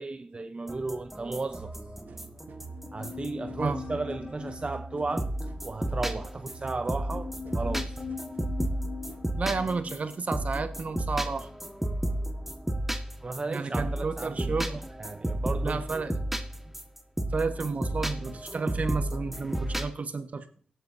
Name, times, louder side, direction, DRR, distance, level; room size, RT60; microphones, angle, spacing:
voice 1, 0.0-1.7 2.9-5.3 5.6-8.0 13.2-14.6 15.0-16.0, right 3 dB, 40° right, 0.7 m, -34 dB
sound 1, 0.7-4.6 5.2-19.9, right 1 dB, 10° right, 1.5 m, -33 dB
sound 2, 1.6-9.6, right 4 dB, 75° right, 1.1 m, -46 dB
sound 3, 2.7-12.0 12.3-12.4, left 5 dB, 45° left, 1.4 m, -43 dB
voice 2, 9.4-11.5 13.5-14.8 15.6-16.1 17.3-20.4, right 4 dB, 55° right, 1.3 m, -31 dB
17.0 x 8.9 x 2.7 m
cardioid pair, 50°, 3 cm